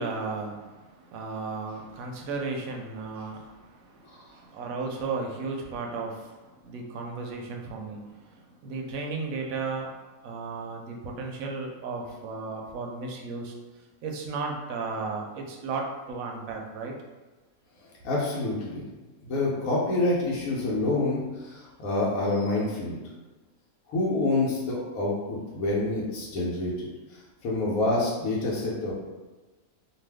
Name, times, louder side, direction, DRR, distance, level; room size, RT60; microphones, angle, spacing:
voice 1, 0.0-9.9 10.2-13.5 14.0-17.0, right 4 dB, 80° right, 1 dB, 1.0 m, -35 dB
voice 2, 18.0-18.8 19.2-23.0 23.9-28.9, left 2 dB, 85° left, -5 dB, 1.1 m, -27 dB
2.6 x 2.4 x 3.3 m, 1.2 s
omnidirectional pair, 1.4 m